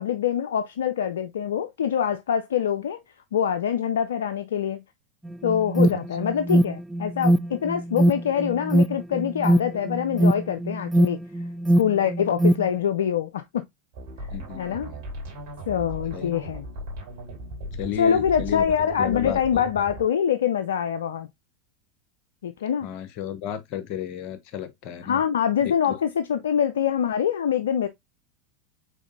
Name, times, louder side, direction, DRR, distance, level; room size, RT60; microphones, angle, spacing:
voice 1, 0.0-3.0 3.3-4.8 5.4-11.2 11.8-13.6 14.2-14.3 14.6-14.9 15.7-16.7 18.0-21.3 22.4-22.9 25.0-27.9, left 8 dB, 70° left, 0.3 m, -25 dB
Alarm, 5.3-12.7, right 1 dB, ahead, 0.4 m, -22 dB
sound 1, 13.9-20.1, right 1 dB, 60° right, 3.0 m, -37 dB
voice 2, 14.3-15.0 16.1-16.3 17.7-18.7 19.0-19.4 22.8-25.2 25.6-25.9, left 10 dB, 50° left, 0.8 m, -33 dB
5.0 x 4.0 x 2.5 m
figure-of-eight pair, 85°, 0 cm